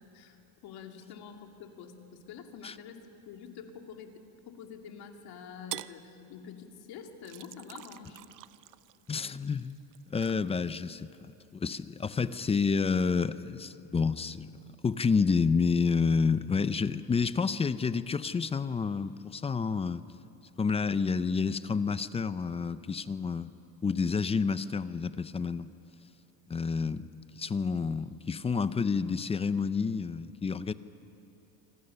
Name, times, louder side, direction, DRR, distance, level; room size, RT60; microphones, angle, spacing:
voice 1, 0.1-8.2, left 7 dB, 60° left, 3 dB, 2.6 m, -47 dB
sound 1, 5.7-6.0 7.2-11.5 11.9-13.2, right 15 dB, 50° right, 0.6 m, -47 dB
voice 2, 9.1-9.8 10.1-14.5 14.8-20.0 20.6-23.5 23.8-25.7 26.5-27.1 27.4-30.7, left 5 dB, 15° left, 14 dB, 0.5 m, -29 dB
26.5 x 25.5 x 6.8 m, 2.9 s
cardioid pair, 135°, 42 cm